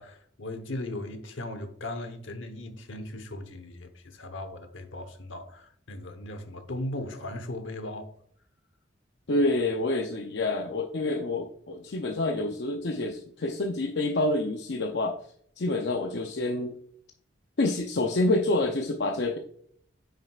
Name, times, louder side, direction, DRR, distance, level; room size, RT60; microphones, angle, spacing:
voice 1, 0.0-8.1, left 1 dB, 80° left, 1.1 m, -38 dB
voice 2, 9.3-15.2 15.6-16.7 17.6-19.4, left 2 dB, 60° left, 0.6 m, -27 dB
9.1 x 6.5 x 2.4 m
head